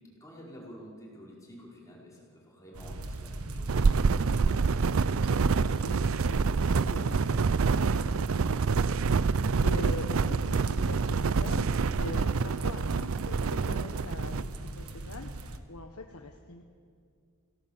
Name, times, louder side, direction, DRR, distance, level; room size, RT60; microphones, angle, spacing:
voice 1, 0.0-5.2, equal, 15° left, -4 dB, 4.8 m, -50 dB
sound 1, 2.7-15.6, right 2 dB, 85° right, 1.4 m, -40 dB
sound 2, 3.7-14.4, right 5 dB, 65° right, 0.5 m, -27 dB
voice 2, 5.6-16.6, left 2 dB, 90° left, 3 dB, 1.4 m, -43 dB
26.5 x 17.0 x 7.3 m, 2.2 s
head